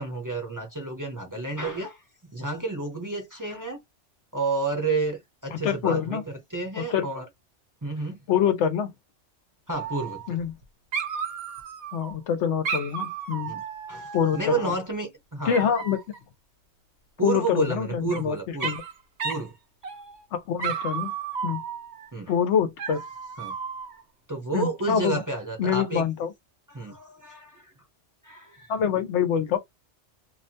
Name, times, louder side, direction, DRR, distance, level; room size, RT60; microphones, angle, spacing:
voice 1, 0.0-2.0 2.3-3.8 4.3-7.3 7.8-8.2 9.7-10.4 13.5-13.6 13.9-15.6 17.2-18.7 19.2-19.5 22.1-22.3 23.4-23.5 24.3-26.0 26.7-27.7 28.2-28.7, right 3 dB, 20° right, 0.7 m, -31 dB
voice 2, 5.5-6.2 6.8-7.1 8.3-8.9 10.3-10.5 11.9-13.5 14.1-14.8 15.5-16.0 17.2-18.8 20.3-21.1 21.4-21.6 22.3-23.0 24.5-25.2 25.6-26.3 28.7-29.6, left 7 dB, 80° left, 0.9 m, -25 dB
Dog, 9.7-10.6 10.9-12.1 12.6-14.7 15.5-16.2 17.6-18.2 18.6-18.9 19.2-19.5 19.8-20.2 20.6-22.1 22.8-24.0, right 6 dB, 70° right, 1.1 m, -33 dB
2.7 x 2.1 x 2.7 m
omnidirectional pair, 1.2 m